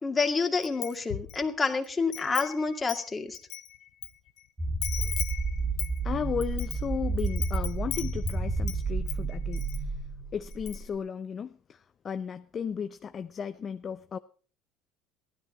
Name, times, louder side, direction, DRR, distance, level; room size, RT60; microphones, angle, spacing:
voice 1, 0.0-3.4, left 4 dB, 25° left, 2.2 m, -28 dB
Wind chime, 0.6-1.4 1.8-4.1 4.4-4.5 4.8-8.8 9.1-9.8 10.1-10.2 10.5-11.0, left 14 dB, 65° left, 1.2 m, -38 dB
sound 1, 4.6-10.8, right 3 dB, 20° right, 2.9 m, -31 dB
voice 2, 6.0-9.9 10.3-14.2, left 7 dB, 40° left, 0.6 m, -35 dB
16.0 x 13.0 x 4.3 m
hypercardioid pair, 70°, 0 cm